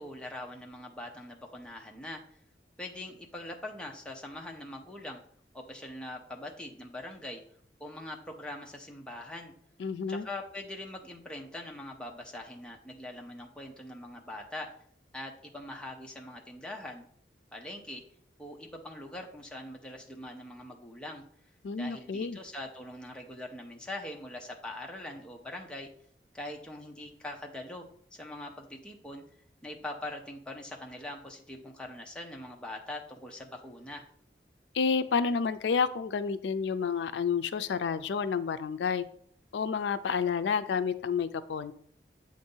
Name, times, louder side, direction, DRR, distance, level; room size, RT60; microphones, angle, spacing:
voice 1, 0.0-2.2 2.8-5.2 5.5-7.4 7.8-9.5 10.1-14.7 15.1-17.1 17.5-18.0 18.4-21.2 21.8-25.9 26.3-27.9 28.1-29.2 29.6-34.0, left 1 dB, 5° left, 0 dB, 0.6 m, -42 dB
voice 2, 9.8-10.2 21.6-22.4 34.7-39.0 39.5-41.7, left 6 dB, 85° left, 12 dB, 0.4 m, -30 dB
7.8 x 2.6 x 5.4 m, 0.62 s
head